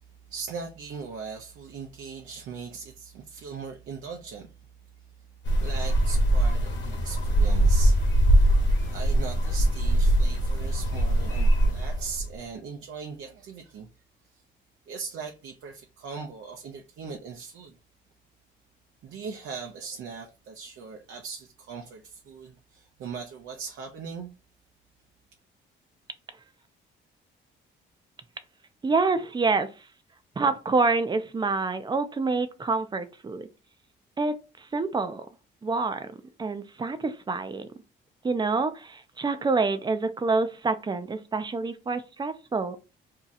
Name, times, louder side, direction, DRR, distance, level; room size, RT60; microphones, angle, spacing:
voice 1, 0.3-4.5 5.6-8.0 8.8-13.9 14.3-14.4 14.9-17.7 19.0-24.3, right 5 dB, 70° right, 0.6 m, -39 dB
sound 1, 5.4-12.3, right 1 dB, 65° left, 1.1 m, -22 dB
voice 2, 28.8-29.7 30.4-33.5 34.2-35.3 35.6-37.7 38.2-42.8, right 3 dB, 20° right, 0.5 m, -27 dB
2.7 x 2.3 x 3.9 m
cardioid pair, 90°, 20 cm